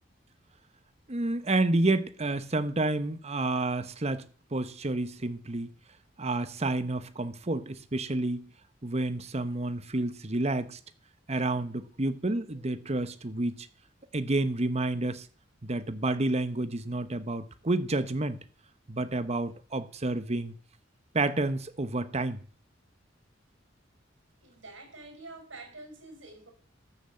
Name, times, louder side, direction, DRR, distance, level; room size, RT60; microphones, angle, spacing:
voice 1, 1.1-4.2 4.5-5.7 6.2-8.5 8.8-10.8 11.3-13.7 14.1-15.3 15.6-18.4 18.9-20.5 21.1-22.4, right 2 dB, 35° right, 1.1 m, -29 dB
voice 2, 24.4-26.5, right 2 dB, 80° right, 5.7 m, -47 dB
13.5 x 7.2 x 7.8 m
head